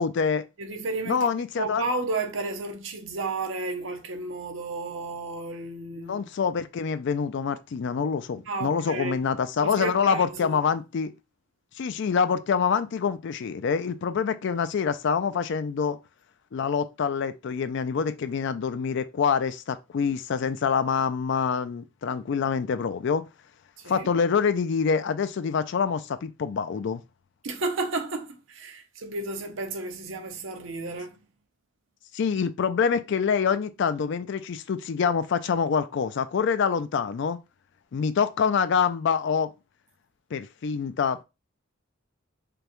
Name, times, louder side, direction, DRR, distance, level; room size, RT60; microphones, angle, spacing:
voice 1, 0.0-0.4 1.1-1.8 6.1-11.1 11.8-16.0 16.5-23.2 23.8-27.0 32.1-37.4 37.9-39.5 40.3-41.2, left 6 dB, 60° left, 0.4 m, -26 dB
voice 2, 0.6-6.5 8.5-9.2 9.6-10.6 23.8-24.1 27.4-31.2, right 3 dB, 65° right, 0.7 m, -32 dB
5.1 x 2.2 x 3.0 m
head